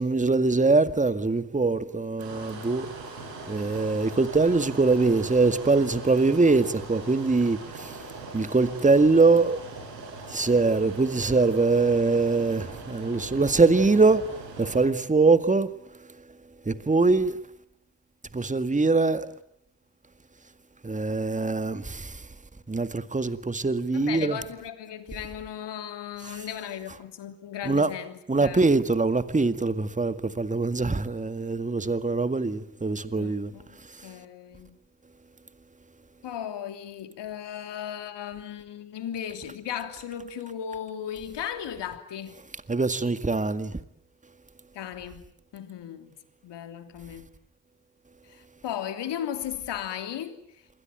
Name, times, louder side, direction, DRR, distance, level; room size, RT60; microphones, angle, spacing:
voice 1, 0.0-17.4 18.3-19.3 20.8-22.4 22.7-24.4 26.2-26.5 27.6-27.9 28.3-34.2 42.7-43.8, right 3 dB, 15° right, 1.9 m, -23 dB
sound 1, 2.2-14.9, right 3 dB, 85° right, 7.1 m, -41 dB
voice 2, 23.9-28.6 33.1-33.4 33.7-33.8 34.0-34.8 36.2-42.4 44.7-46.2 46.4-47.3 48.2-50.4, left 9 dB, 60° left, 3.2 m, -36 dB
27.5 x 22.0 x 9.2 m
hypercardioid pair, 50°, 48 cm